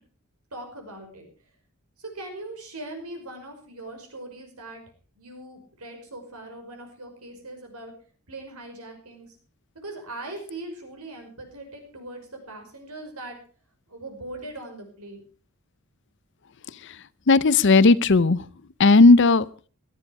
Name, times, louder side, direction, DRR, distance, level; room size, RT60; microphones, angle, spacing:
voice 1, 0.5-1.3 2.0-4.8 5.2-7.9 8.3-9.3 9.8-13.4 13.9-15.2, right 2 dB, 85° right, 5.5 m, -40 dB
voice 2, 17.3-18.5 18.8-19.5, left 3 dB, 55° left, 0.6 m, -16 dB
18.0 x 13.0 x 4.8 m
head